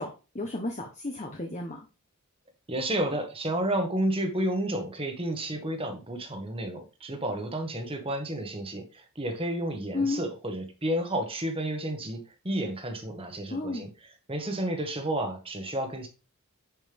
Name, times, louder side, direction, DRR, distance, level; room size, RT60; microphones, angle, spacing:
voice 1, 0.0-1.8 9.9-10.2 13.5-13.9, left 2 dB, 30° left, 3 dB, 1.1 m, -32 dB
voice 2, 2.7-13.9 14.3-16.1, right 1 dB, 25° right, 5 dB, 1.5 m, -31 dB
10.5 x 5.3 x 3.5 m, 0.31 s
head